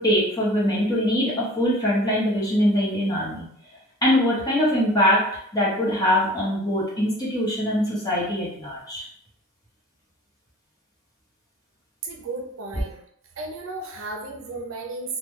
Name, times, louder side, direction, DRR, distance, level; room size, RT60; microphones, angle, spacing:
voice 1, 0.0-3.5 4.0-9.0, equal, 15° left, -6 dB, 1.0 m, -22 dB
voice 2, 12.0-13.0 13.4-15.2, right 3 dB, 65° right, 1 dB, 0.6 m, -34 dB
3.7 x 2.2 x 3.1 m, 0.66 s
head